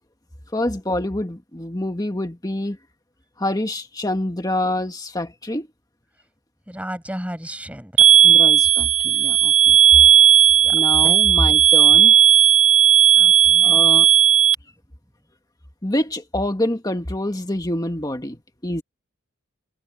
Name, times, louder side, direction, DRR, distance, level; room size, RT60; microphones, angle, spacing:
voice 1, 0.5-2.8 3.4-5.7 8.2-9.8 10.7-12.1 13.6-14.1 15.8-18.8, left 1 dB, 15° left, 1.7 m, -26 dB
voice 2, 6.7-7.9 10.6-11.1 13.2-13.8, equal, 5° right, 5.8 m, -34 dB
sound 1, 8.0-14.5, right 9 dB, 65° right, 0.8 m, -14 dB
head